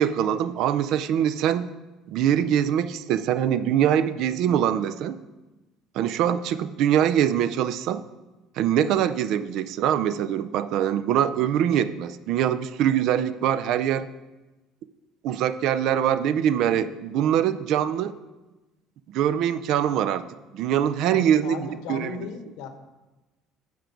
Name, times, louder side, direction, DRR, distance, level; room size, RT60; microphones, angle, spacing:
voice 1, 0.0-1.7 2.1-5.2 5.9-8.0 8.6-14.1 15.2-18.1 19.1-20.3 20.5-21.6 21.9-22.2, right 10 dB, 50° right, 13 dB, 0.4 m, -23 dB
voice 2, 21.1-22.7, left 5 dB, 70° left, 8 dB, 1.1 m, -36 dB
9.3 x 5.1 x 6.8 m, 1.1 s
cardioid pair, 180°, 0 cm